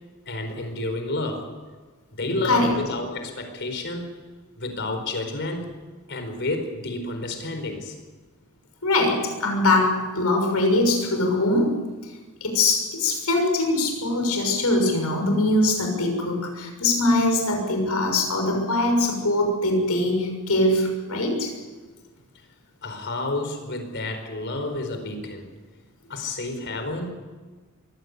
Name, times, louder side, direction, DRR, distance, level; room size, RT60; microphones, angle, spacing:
voice 1, 0.3-1.5 2.1-4.1 4.6-5.7 6.1-7.9 22.8-25.5 26.1-27.1, left 2 dB, 55° left, 6 dB, 4.6 m, -30 dB
voice 2, 8.8-11.9 12.4-21.5 26.7-26.8, left 2 dB, 85° left, 3 dB, 6.4 m, -22 dB
23.0 x 16.5 x 8.3 m, 1.4 s
head